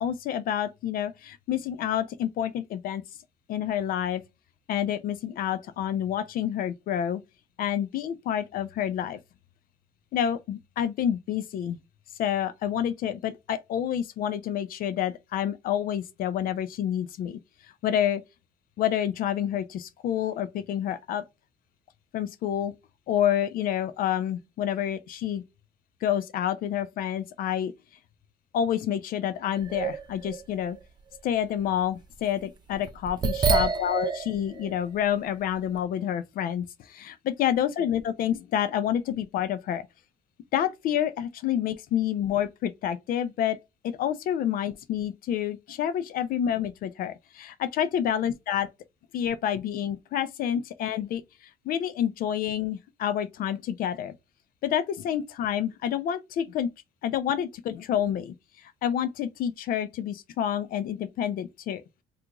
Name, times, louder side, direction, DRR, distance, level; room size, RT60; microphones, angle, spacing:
voice 1, 0.0-3.0 3.5-4.2 4.7-7.2 7.6-9.2 10.1-11.8 12.2-17.4 17.8-18.2 18.8-21.2 22.1-22.7 23.1-25.4 26.0-27.7 28.5-30.8 31.2-39.9 40.5-43.6 43.8-48.7 49.1-54.2 54.6-56.7 57.0-61.8, left 10 dB, 60° left, 0.4 m, -28 dB
sound 1, 29.6-30.8 31.1-31.2 32.7-34.8 35.2-35.3, right 5 dB, 25° right, 0.4 m, -27 dB
2.8 x 2.4 x 3.6 m
cardioid pair, 125°, 17 cm